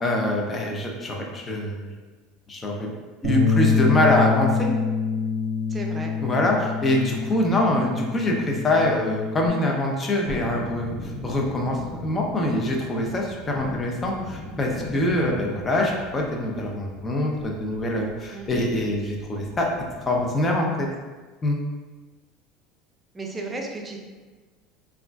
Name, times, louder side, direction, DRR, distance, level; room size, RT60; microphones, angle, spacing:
voice 1, 0.0-1.9 2.5-2.9 3.2-4.7 6.2-10.9 11.2-19.7 20.1-20.9 21.4-21.6, left 1 dB, 25° left, 0 dB, 0.6 m, -24 dB
Bass guitar, 3.2-9.5, left 5 dB, 70° right, 0.6 m, -25 dB
voice 2, 5.7-6.1 18.3-18.5 23.1-24.0, right 3 dB, 20° right, 1 dB, 0.5 m, -34 dB
Thunderstorm, 10.3-20.5 20.8-20.9, left 2 dB, 60° left, 0.9 m, -38 dB
3.5 x 2.3 x 2.3 m, 1.3 s
supercardioid pair, 95°, 0 cm